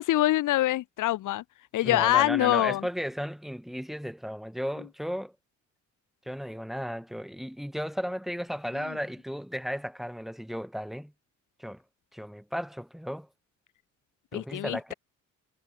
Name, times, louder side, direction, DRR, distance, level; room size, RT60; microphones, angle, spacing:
voice 1, 0.0-1.4 1.7-2.8 14.3-14.9, left 15 dB, 80° left, 1.3 m, -25 dB
voice 2, 1.8-5.3 6.3-11.1 11.6-11.8 12.1-13.3 14.3-14.9, equal, ahead, 2.6 m, -34 dB
cardioid pair, 125°, 30 cm